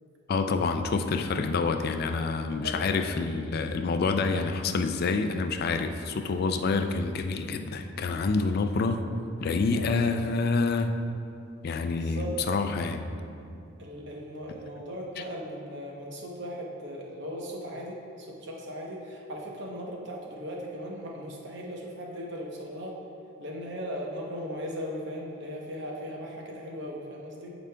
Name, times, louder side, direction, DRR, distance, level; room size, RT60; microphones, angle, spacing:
voice 1, 0.3-9.0 9.4-11.0 11.6-13.1, left 4 dB, 45° left, 7 dB, 0.3 m, -27 dB
voice 2, 2.6-3.1 9.7-10.0 11.9-12.4 13.8-23.0 23.4-27.5, equal, 55° right, -1 dB, 0.9 m, -38 dB
11.5 x 5.0 x 2.2 m, 2.6 s
head